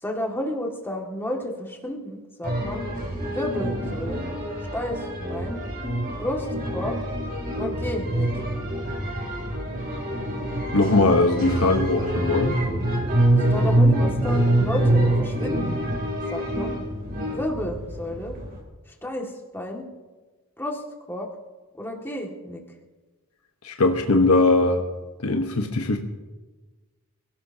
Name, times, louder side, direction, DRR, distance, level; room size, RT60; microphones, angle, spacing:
voice 1, 0.0-2.9 3.3-4.2 4.7-5.6 6.2-6.5 6.7-6.9 7.5-8.3 13.5-15.8 16.3-16.8 17.3-18.4 18.9-19.8 20.6-20.8 21.1-21.3 21.7-22.6, left 1 dB, 10° left, 0 dB, 2.2 m, -31 dB
sound 1, 2.4-18.6, right 1 dB, 40° right, 3.2 m, -25 dB
voice 2, 10.7-12.6 23.6-24.8 25.2-26.0, left 2 dB, 85° left, 3 dB, 1.3 m, -20 dB
27.0 x 17.5 x 2.9 m, 1.3 s
head